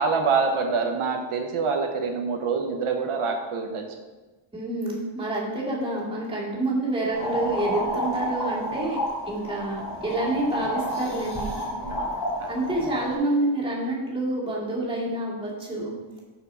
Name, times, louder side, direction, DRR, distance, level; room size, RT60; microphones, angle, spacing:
voice 1, 0.0-3.8 11.7-12.0 12.4-12.5, right 4 dB, 85° right, 4 dB, 1.0 m, -26 dB
voice 2, 4.5-9.0 9.3-11.5 12.5-15.9, right 2 dB, 10° right, -6 dB, 2.3 m, -28 dB
sound 1, 7.1-13.2, equal, 50° left, 3.1 m, -30 dB
6.9 x 6.1 x 5.5 m, 1.2 s
wide cardioid pair, 170°, 49 cm